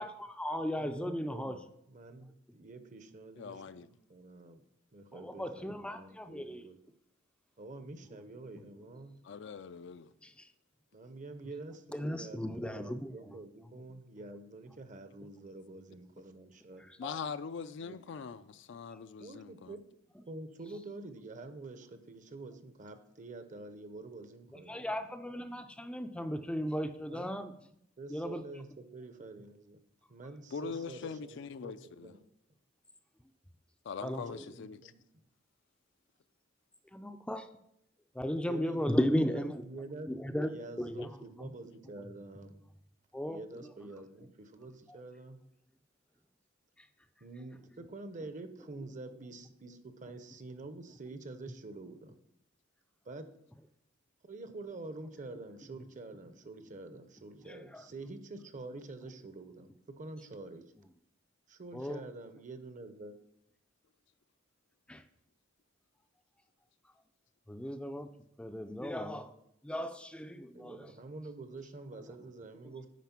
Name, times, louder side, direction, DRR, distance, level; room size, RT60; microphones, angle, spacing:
voice 1, 0.0-1.6 5.1-6.7 10.2-10.3 11.9-13.3 17.0-17.2 24.7-27.5 28.1-28.4 34.0-34.5 36.9-37.4 38.2-40.5 40.8-41.1 41.4-41.5 42.3-42.4 43.1-43.9 57.4-57.8 60.8-60.9 61.7-62.1 64.9-65.0 67.5-68.1 68.4-69.3 69.6-70.9, equal, 5° left, 0.4 m, -36 dB
voice 2, 0.8-4.6 4.9-6.8 7.6-9.2 10.9-16.8 17.8-18.0 19.2-19.9 20.2-24.9 27.0-27.3 28.0-29.8 30.1-32.2 34.3-35.0 38.3-42.5 43.2-45.4 47.2-52.2 53.0-53.3 54.2-60.7 61.5-63.2 70.5-72.9, right 2 dB, 40° right, 0.8 m, -47 dB
voice 3, 3.4-3.9 9.2-10.1 17.0-19.8 30.5-32.1 33.8-34.9, left 5 dB, 65° left, 0.4 m, -42 dB
9.3 x 5.0 x 5.9 m
head